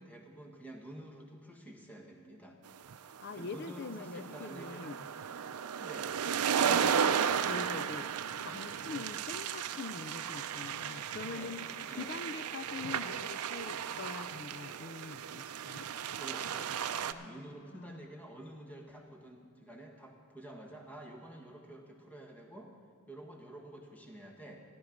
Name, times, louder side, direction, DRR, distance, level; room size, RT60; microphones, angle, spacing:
voice 1, 0.0-2.6 3.4-5.0 5.8-6.1 11.2-11.6 11.8-12.2 16.1-16.7 17.1-22.7 23.1-24.6, right 1 dB, 5° left, 1 dB, 1.3 m, -49 dB
sound 1, 2.9-17.1, right 7 dB, 75° right, 0.5 m, -35 dB
voice 2, 3.2-5.1 6.6-8.1 8.4-15.9 17.1-18.1, left 4 dB, 45° left, 14 dB, 0.4 m, -44 dB
13.5 x 11.0 x 5.1 m, 2.3 s
head